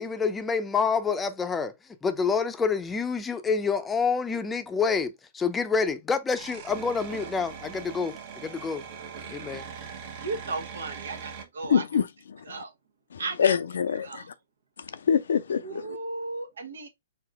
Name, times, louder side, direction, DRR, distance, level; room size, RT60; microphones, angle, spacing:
voice 1, 0.0-1.7 2.0-8.1 8.4-8.8 9.3-9.6, left 5 dB, 10° left, 0.6 m, -27 dB
sound 1, 6.3-11.4, right 6 dB, 45° right, 1.1 m, -41 dB
voice 2, 10.2-12.0 12.4-12.7 13.2-13.6 14.0-14.3 15.6-16.9, right 3 dB, 75° right, 1.1 m, -35 dB
voice 3, 11.7-12.0 12.3-12.4 13.1-14.2 14.9-15.6, left 7 dB, 70° left, 0.5 m, -24 dB
4.8 x 2.8 x 3.5 m
hypercardioid pair, 125°, 0 cm